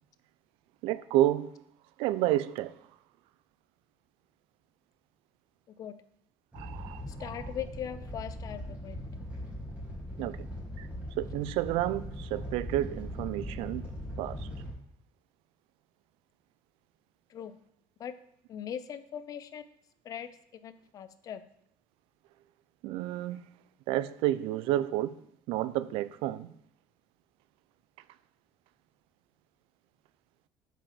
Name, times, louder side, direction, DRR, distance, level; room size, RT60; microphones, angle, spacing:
voice 1, 0.8-1.6 2.0-2.7 6.5-7.1 10.2-10.4 10.8-10.9 11.2-13.9 14.2-14.5 22.8-23.4 23.9-25.2 25.5-26.5, right 14 dB, 85° right, 0.6 m, -30 dB
Animal, 6.5-14.7, equal, 15° right, 3.8 m, -40 dB
voice 2, 7.1-9.0 17.3-17.6 18.0-18.1 18.5-19.7 20.0-20.3 20.6-21.4, left 9 dB, 40° left, 0.8 m, -40 dB
8.7 x 6.1 x 7.1 m
cardioid pair, 155°, 9 cm